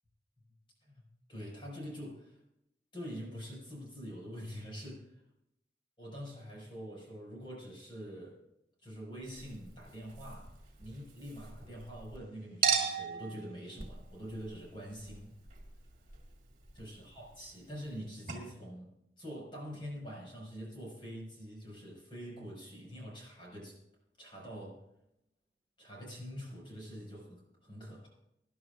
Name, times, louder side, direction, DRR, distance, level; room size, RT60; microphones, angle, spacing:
voice 1, 1.3-2.4 2.9-5.1 6.0-8.4 8.8-10.5 10.8-15.3 16.7-23.8 24.2-24.8 25.8-28.1, equal, 30° left, -3 dB, 5.8 m, -45 dB
Chink clink, 9.2-12.2 12.6-18.0 18.3-18.4, right 6 dB, 45° right, 2.6 m, -39 dB
24.5 x 11.0 x 2.5 m, 0.84 s
head